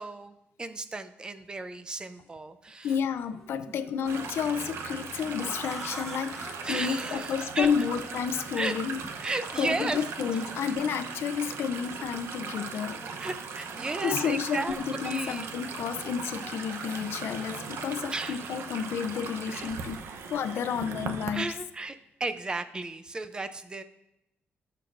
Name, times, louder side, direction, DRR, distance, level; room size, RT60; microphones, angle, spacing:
voice 1, 0.0-2.9 6.6-7.7 8.6-8.7 9.1-10.0 10.3-10.7 13.2-14.8 15.0-15.5 18.1-18.5 19.5-20.1 21.3-23.8, right 3 dB, 20° right, 11 dB, 0.5 m, -35 dB
sound 1, 2.1-2.3 3.2-5.4 6.0-7.4 8.4-9.0 9.3-9.4 9.7-11.6 12.3-13.4 14.0-14.5 14.8-17.9, left 3 dB, 40° left, 1.2 m, -53 dB
voice 2, 2.8-9.0 9.6-13.0 14.0-21.5, left 7 dB, 75° left, 11 dB, 0.5 m, -31 dB
sound 2, 4.1-21.3, right 5 dB, 85° right, 0.8 m, -39 dB
sound 3, 5.1-10.7 11.6-12.8 13.3-13.4 13.6-15.1 15.5-18.3, equal, ahead, 1.1 m, -46 dB
18.5 x 6.7 x 2.6 m, 0.89 s
wide cardioid pair, 160°, 4 cm